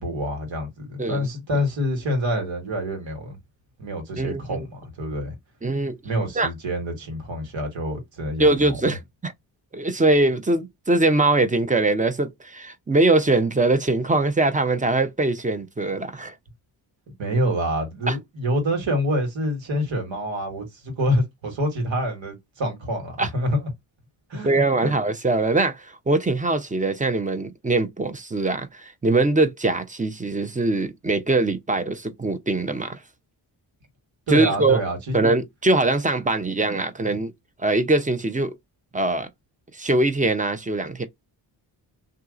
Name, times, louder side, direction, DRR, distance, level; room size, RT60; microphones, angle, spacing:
voice 1, 0.0-3.4 3.8-5.4 6.0-8.9 17.2-23.7 24.3-24.9 34.3-35.2, equal, 70° right, 1.6 m, -27 dB
voice 2, 4.2-4.7 5.6-6.0 6.4-6.5 8.4-9.3 9.7-16.3 18.1-18.2 23.2-23.3 24.4-33.0 34.3-34.8 35.1-37.3 37.6-38.5 38.9-39.3 39.7-41.0, right 2 dB, 15° right, 0.7 m, -22 dB
2.8 x 2.3 x 3.7 m
cardioid pair, 55°, 47 cm